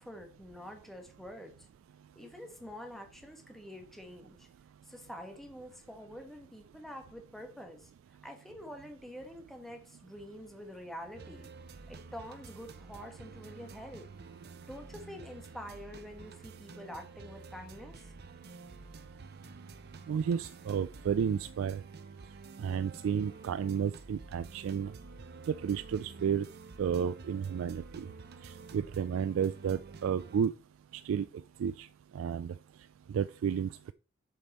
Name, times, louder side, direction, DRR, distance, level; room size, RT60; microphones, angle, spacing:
voice 1, 0.0-1.6 2.1-4.5 4.9-7.9 8.2-11.5 11.9-14.1 14.7-18.1, equal, ahead, 1.2 m, -47 dB
sound 1, 11.1-30.5, right 4 dB, 55° right, 0.7 m, -50 dB
voice 2, 20.1-21.8 22.6-24.9 25.6-26.5 26.8-28.1 28.4-30.5 31.0-31.3 31.6-31.9 32.1-32.5 33.1-33.9, right 7 dB, 75° right, 0.3 m, -32 dB
7.6 x 5.3 x 4.2 m
head